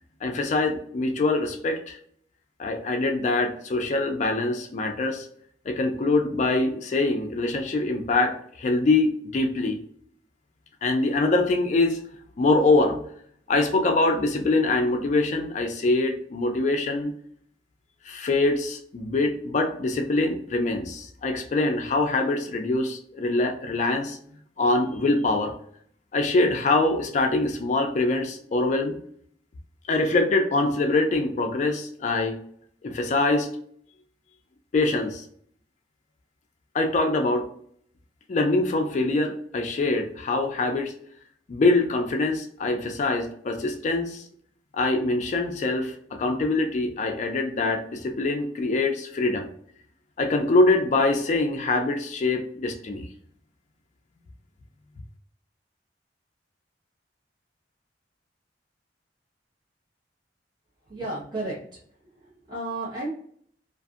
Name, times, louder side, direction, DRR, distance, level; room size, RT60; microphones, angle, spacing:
voice 1, 0.2-2.0 2.6-5.3 5.7-9.8 10.8-12.0 12.4-13.0 13.5-17.1 18.0-24.2 24.6-25.5 26.1-29.0 29.9-32.4 32.8-33.5 34.7-35.2 36.7-37.5 38.3-40.9 41.5-44.3 44.7-49.5 50.2-53.1, left 2 dB, 40° left, 4 dB, 0.3 m, -24 dB
voice 2, 60.9-63.1, right 2 dB, 25° right, -8 dB, 0.9 m, -34 dB
2.5 x 2.5 x 2.4 m, 0.63 s
head